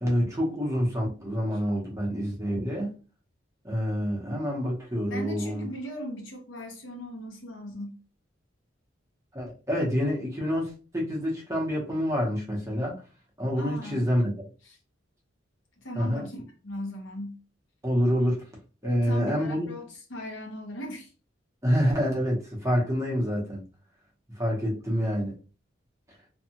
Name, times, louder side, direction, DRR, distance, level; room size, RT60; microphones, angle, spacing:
voice 1, 0.0-3.0 3.6-5.7 9.3-13.0 13.4-14.4 15.9-16.3 17.8-18.5 18.8-19.7 21.6-23.6 24.3-25.3, equal, 15° right, 0.8 m, -27 dB
voice 2, 5.1-8.0 13.6-14.1 14.6-14.8 15.8-16.4 16.6-17.4 18.8-21.1, left 1 dB, 75° left, 0.9 m, -38 dB
2.6 x 2.3 x 2.8 m
head